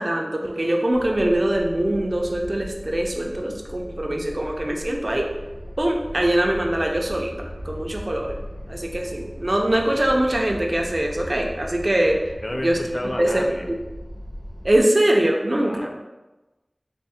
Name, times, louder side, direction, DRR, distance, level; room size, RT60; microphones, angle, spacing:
voice 1, 0.0-5.3 5.8-8.4 8.7-12.2 12.5-12.8 13.2-13.7 14.6-15.9, right 1 dB, 50° right, 1 dB, 0.5 m, -23 dB
sound 1, 0.9-14.8, equal, 80° left, 1.4 m, -38 dB
voice 2, 12.4-13.7 15.6-16.0, left 1 dB, 40° left, 3 dB, 0.4 m, -31 dB
3.5 x 2.1 x 4.1 m, 1.1 s
wide cardioid pair, 45°, 0 cm